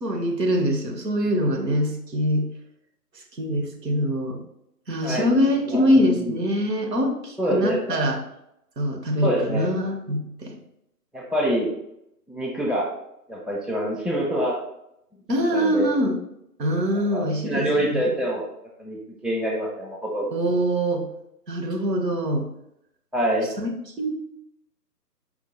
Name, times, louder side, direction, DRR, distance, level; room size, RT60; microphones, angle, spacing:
voice 1, 0.0-2.5 3.4-4.4 4.9-8.2 8.8-10.5 15.3-16.2 16.6-18.1 20.3-21.1 21.5-22.5 23.6-23.7 24.0-24.1, equal, 80° right, 4 dB, 1.0 m, -23 dB
voice 2, 5.7-6.4 7.4-8.1 9.2-9.7 11.1-11.7 12.3-12.9 13.3-14.5 15.5-15.9 17.1-18.5 18.8-19.0 19.2-20.3 23.1-23.5, equal, ahead, -3 dB, 0.3 m, -25 dB
4.3 x 2.1 x 4.2 m, 0.79 s
figure-of-eight pair, 150°, 49 cm